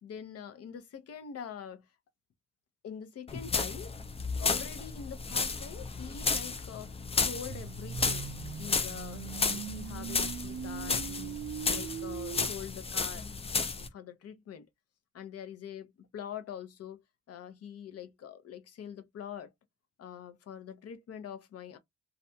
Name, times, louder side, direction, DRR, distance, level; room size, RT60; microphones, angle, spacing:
voice 1, 0.0-1.9 2.8-8.3 8.6-11.4 11.7-13.3 13.8-14.7 15.1-19.5 20.0-21.8, left 8 dB, 55° left, 0.7 m, -44 dB
sound 1, 3.3-13.9, left 4 dB, 20° left, 0.4 m, -33 dB
sound 2, 7.5-12.5, right 10 dB, 55° right, 0.6 m, -40 dB
2.5 x 2.2 x 2.7 m
cardioid pair, 90°, 30 cm